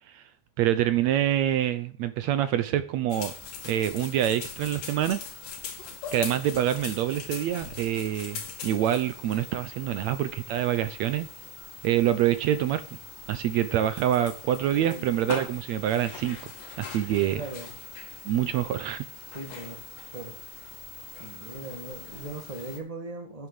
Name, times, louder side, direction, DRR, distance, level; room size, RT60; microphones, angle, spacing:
voice 1, 0.6-3.3 3.6-5.2 6.1-11.3 11.8-12.8 13.3-16.5 16.8-17.4 18.2-19.0, right 11 dB, 70° right, 12 dB, 1.9 m, -26 dB
sound 1, 3.1-22.8, left 5 dB, 80° left, 3.7 m, -42 dB
voice 2, 14.7-15.1 17.3-17.7 19.3-19.8 20.1-20.3 21.2-23.5, right 2 dB, 15° right, 4 dB, 1.5 m, -39 dB
9.8 x 7.9 x 8.5 m, 0.40 s
omnidirectional pair, 3.6 m